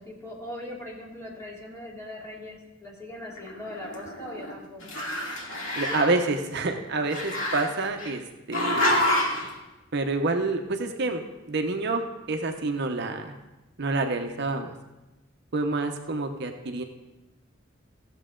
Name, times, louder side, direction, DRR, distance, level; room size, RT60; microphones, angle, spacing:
voice 1, 0.0-5.0, left 1 dB, 15° left, -4 dB, 2.4 m, -40 dB
Growling, 3.3-4.5 4.8-6.2 7.1-8.1 8.5-9.5, left 1 dB, 85° left, 2.3 m, -28 dB
voice 2, 5.5-8.2 8.5-9.1 9.9-13.4 13.8-14.8 15.5-16.8, right 3 dB, 60° right, 5 dB, 0.8 m, -28 dB
16.0 x 7.4 x 3.8 m, 1.0 s
head